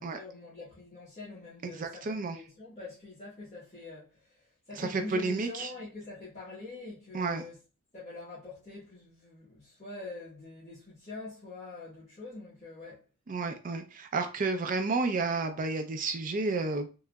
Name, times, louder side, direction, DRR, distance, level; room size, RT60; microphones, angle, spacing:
voice 1, 0.0-4.4 4.7-7.6 7.9-13.0, left 3 dB, 30° left, 1.4 m, -45 dB
voice 2, 1.6-2.4 4.7-5.7 7.1-7.4 13.3-16.9, right 3 dB, 40° right, 0.4 m, -31 dB
3.7 x 3.0 x 2.2 m
head